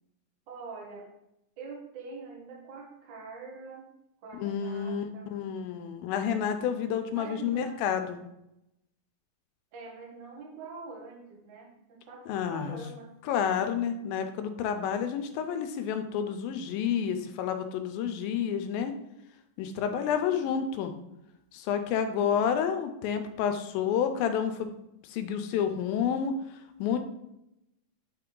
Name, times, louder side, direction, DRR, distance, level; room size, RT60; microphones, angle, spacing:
voice 1, 0.5-1.1 1.6-3.9 4.2-5.5 7.1-7.8 9.7-13.6 20.1-20.9, right 4 dB, 75° right, -1 dB, 1.0 m, -45 dB
voice 2, 4.4-8.2 12.3-12.8 13.3-18.9 19.6-20.9 21.5-24.7 25.1-26.4 26.8-27.0, left 8 dB, 85° left, 7 dB, 2.4 m, -29 dB
8.6 x 3.4 x 3.7 m, 0.86 s
omnidirectional pair, 4.2 m